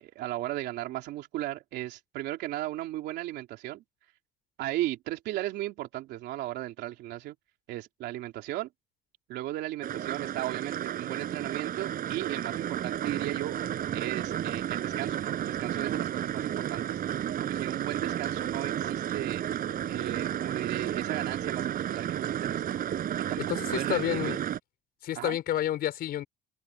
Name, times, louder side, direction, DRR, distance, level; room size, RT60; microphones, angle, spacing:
voice 1, 0.0-3.8 4.6-7.3 7.7-8.7 9.3-13.6 13.9-17.0 17.4-19.4 19.8-22.8 23.3-23.4 23.7-24.4 25.1-25.4, right 15 dB, 80° right, 3.3 m, -36 dB
sound 1, 9.8-24.6, right 10 dB, 55° right, 7.8 m, -32 dB
voice 2, 23.4-24.4 25.0-26.3, left 12 dB, 65° left, 4.5 m, -30 dB
cardioid pair, 110°, 17 cm